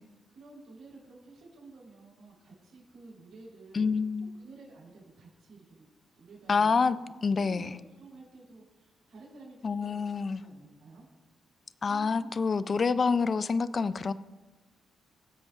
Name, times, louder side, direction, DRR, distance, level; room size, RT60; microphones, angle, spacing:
voice 1, 0.3-3.9 4.4-5.9 6.2-6.8 7.3-11.1 11.8-12.3, right 3 dB, 80° right, 3.7 m, -52 dB
voice 2, 3.7-4.3 6.5-7.7 9.6-10.4 11.8-14.1, left 5 dB, 35° left, 0.4 m, -27 dB
23.5 x 8.0 x 2.4 m
cardioid pair, 130°, 0 cm